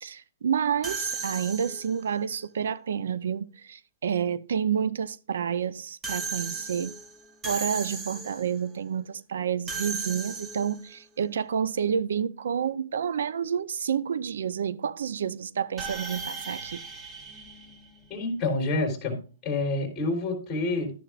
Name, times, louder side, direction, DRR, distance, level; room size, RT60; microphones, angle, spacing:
voice 1, 0.0-7.0 7.4-16.8, right 7 dB, 85° right, 0.5 m, -29 dB
sound 1, 0.8-2.1 6.0-8.6 9.7-10.9 15.8-18.3, right 4 dB, 10° right, 0.8 m, -36 dB
voice 2, 18.1-19.2 19.4-20.9, left 2 dB, 10° left, 3.4 m, -28 dB
12.5 x 9.9 x 2.4 m
hypercardioid pair, 170°, 0 cm